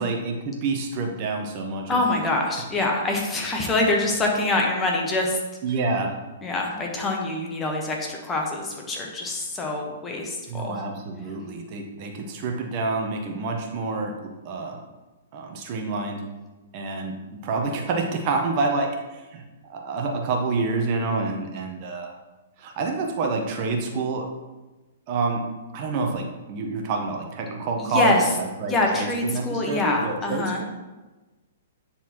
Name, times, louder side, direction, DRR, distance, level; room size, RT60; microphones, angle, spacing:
voice 1, 0.0-2.2 5.6-6.1 10.5-14.1 14.4-14.8 15.3-16.2 16.7-22.1 22.6-24.3 25.1-25.4 25.7-30.6, right 3 dB, 40° right, 2 dB, 1.0 m, -28 dB
voice 2, 1.9-5.4 6.4-10.8 27.8-28.3 28.7-30.6, left 2 dB, 15° left, 0 dB, 1.3 m, -25 dB
9.5 x 4.1 x 3.1 m, 1.1 s
hypercardioid pair, 130°, 0 cm